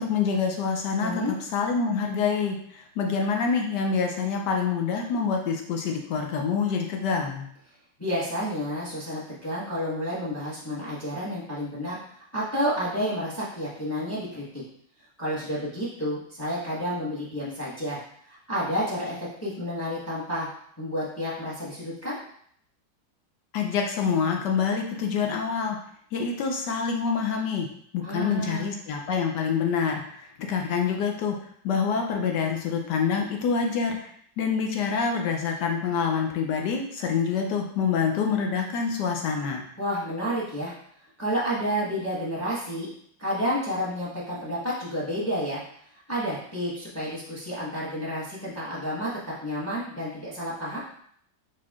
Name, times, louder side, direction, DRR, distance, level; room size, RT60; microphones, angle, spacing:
voice 1, 0.0-1.1 1.5-7.5 23.5-25.8 26.1-27.7 27.9-31.4 31.6-39.6, left 6 dB, 70° left, 2 dB, 1.1 m, -26 dB
voice 2, 1.0-1.3 8.0-14.6 15.2-18.0 18.2-20.5 20.8-22.2 28.0-28.8 39.8-40.7 41.2-42.9 43.2-45.6 46.1-50.8, equal, 10° left, -7 dB, 1.0 m, -30 dB
4.6 x 4.2 x 2.4 m, 0.66 s
omnidirectional pair, 2.1 m